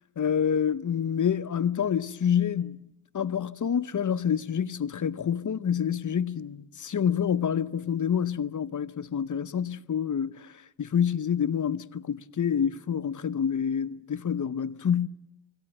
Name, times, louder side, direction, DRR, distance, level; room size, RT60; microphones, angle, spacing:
voice 1, 0.2-2.8 3.1-10.5 10.8-15.1, left 8 dB, 45° left, 0.8 m, -27 dB
23.5 x 17.0 x 9.0 m
cardioid pair, 85°, 43 cm